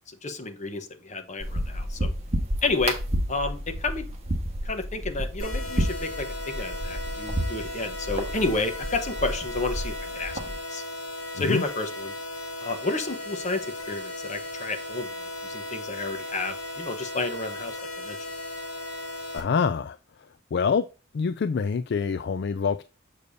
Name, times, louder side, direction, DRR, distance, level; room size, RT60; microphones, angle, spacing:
voice 1, 0.1-2.1 2.6-3.0 3.3-4.0 4.6-10.4 10.7-10.8 11.3-12.1 12.6-13.6 13.9-18.2, left 3 dB, 35° left, 1.0 m, -31 dB
sound 1, 1.4-10.6, right 1 dB, 30° right, 1.4 m, -31 dB
sound 2, 5.4-19.4, left 1 dB, 70° left, 3.7 m, -36 dB
voice 2, 19.3-20.0 20.5-20.8 21.1-22.8, left 5 dB, 55° left, 0.3 m, -25 dB
6.7 x 6.6 x 2.7 m
head